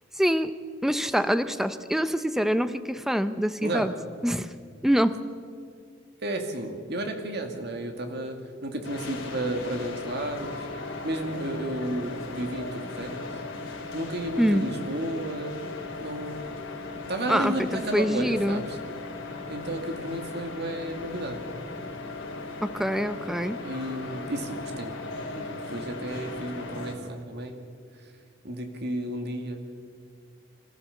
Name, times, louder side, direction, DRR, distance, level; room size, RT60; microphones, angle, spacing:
voice 1, 0.2-0.5 0.8-3.9 4.2-4.5 4.8-5.2 14.4-14.7 17.3-18.6 22.6-23.6, equal, ahead, 11 dB, 0.6 m, -25 dB
voice 2, 3.6-3.9 6.2-8.3 8.6-10.6 11.0-13.3 13.9-15.5 16.0-16.5 17.1-18.8 19.5-21.4 23.6-27.6 28.4-29.6, right 1 dB, 55° right, 5 dB, 2.2 m, -32 dB
sound 1, 8.8-27.0, left 3 dB, 75° left, 3.8 m, -37 dB
25.5 x 14.5 x 7.1 m, 2.2 s
head